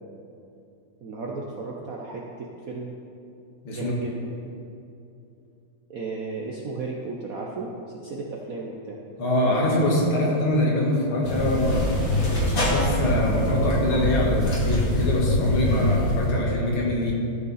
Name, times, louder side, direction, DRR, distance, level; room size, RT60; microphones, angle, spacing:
voice 1, 1.0-2.9 3.7-4.3 5.9-9.0, right 3 dB, 60° right, -2 dB, 0.9 m, -34 dB
voice 2, 9.2-11.8 12.4-17.1, left 1 dB, 70° left, -3 dB, 2.6 m, -24 dB
sound 1, 11.2-16.3, left 1 dB, 40° left, 2.2 m, -24 dB
14.0 x 6.8 x 4.1 m, 2.7 s
omnidirectional pair, 2.4 m